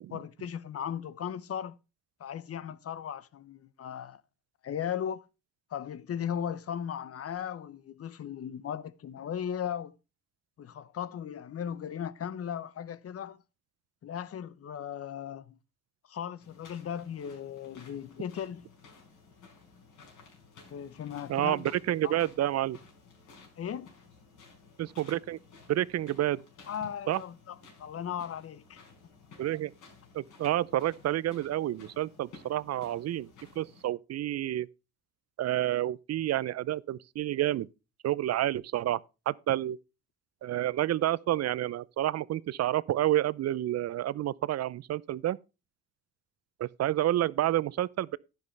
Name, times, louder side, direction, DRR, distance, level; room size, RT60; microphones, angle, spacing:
voice 1, 0.1-1.8 2.2-4.2 4.6-5.2 5.7-9.9 10.6-13.4 14.0-15.6 16.1-18.6 20.7-21.7 22.0-22.1 23.6-23.9 26.7-28.8, left 9 dB, 50° left, 0.8 m, -37 dB
sound 1, 16.4-33.8, left 4 dB, 80° left, 5.1 m, -55 dB
voice 2, 21.3-22.8 24.8-25.4 25.7-26.4 27.1-27.2 29.4-29.7 30.1-33.3 33.6-34.7 35.4-37.7 38.0-39.0 39.3-39.8 40.4-45.4 46.6-48.2, right 13 dB, 60° right, 0.5 m, -29 dB
10.5 x 10.5 x 3.2 m
cardioid pair, 90°, 30 cm